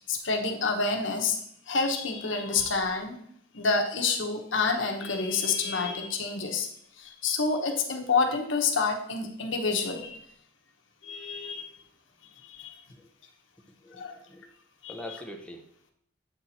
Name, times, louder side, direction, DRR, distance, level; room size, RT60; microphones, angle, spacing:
voice 1, 0.1-1.4 1.7-3.2 3.5-6.7 7.0-10.3 11.0-11.7 12.4-12.8 14.0-14.2 14.8-14.9, left 4 dB, 70° left, 4 dB, 1.0 m, -28 dB
voice 2, 13.7-14.5 14.9-15.9, left 1 dB, 5° left, 1 dB, 0.7 m, -44 dB
7.8 x 4.3 x 4.2 m, 0.66 s
head